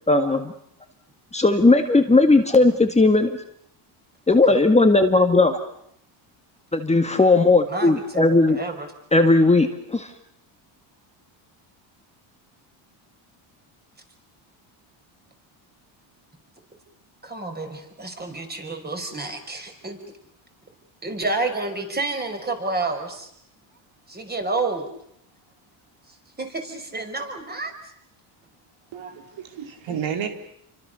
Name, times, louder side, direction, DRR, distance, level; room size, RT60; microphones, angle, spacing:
voice 1, 0.1-0.5 1.3-3.4 4.3-5.6 6.7-8.6 9.1-10.1, left 2 dB, 15° left, 5 dB, 1.9 m, -17 dB
voice 2, 4.3-4.6 7.7-8.9 17.2-20.0 21.0-23.3 24.1-24.8 26.4-27.7, right 3 dB, 20° right, 5 dB, 5.7 m, -29 dB
voice 3, 28.9-30.3, right 8 dB, 60° right, 6 dB, 3.7 m, -31 dB
29.5 x 24.5 x 7.0 m, 0.71 s
cardioid pair, 110°, 50 cm